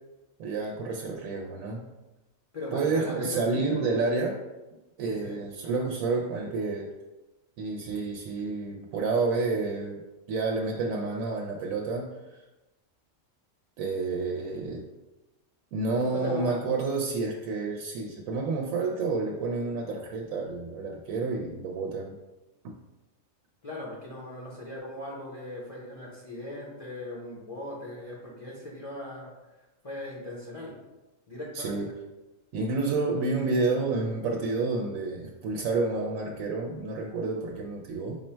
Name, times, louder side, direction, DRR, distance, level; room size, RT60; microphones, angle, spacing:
voice 1, 0.4-1.8 2.7-4.4 5.0-6.9 7.6-10.0 10.3-12.4 13.8-14.8 15.7-22.1 22.6-22.7 31.5-31.9 32.5-38.2, right 3 dB, 85° right, 0 dB, 1.0 m, -29 dB
voice 2, 2.5-3.5 3.7-3.8 5.2-5.4 16.1-16.6 23.6-29.3 29.8-30.7 31.3-31.8, left 1 dB, 35° left, -4 dB, 0.7 m, -38 dB
5.3 x 2.2 x 4.3 m, 1.1 s
omnidirectional pair, 1.4 m